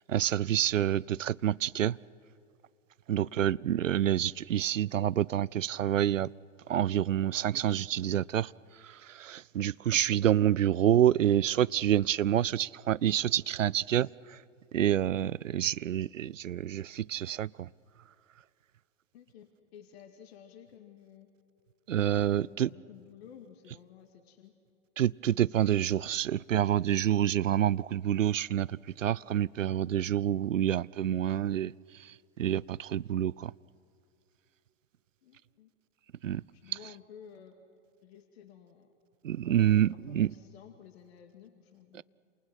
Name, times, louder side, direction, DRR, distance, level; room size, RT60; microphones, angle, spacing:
voice 1, 0.0-2.0 3.1-6.3 6.7-8.5 8.8-14.4 14.7-17.7 21.9-22.7 25.0-31.7 32.4-33.5 36.2-36.4 39.2-40.3, right 11 dB, 75° right, 23 dB, 0.5 m, -27 dB
voice 2, 3.1-3.5 19.1-21.3 22.3-24.5 35.2-35.7 36.5-37.6 38.0-38.9 39.5-42.0, left 9 dB, 55° left, 6 dB, 2.1 m, -53 dB
28.5 x 28.5 x 6.2 m, 2.7 s
figure-of-eight pair, 95°, 39 cm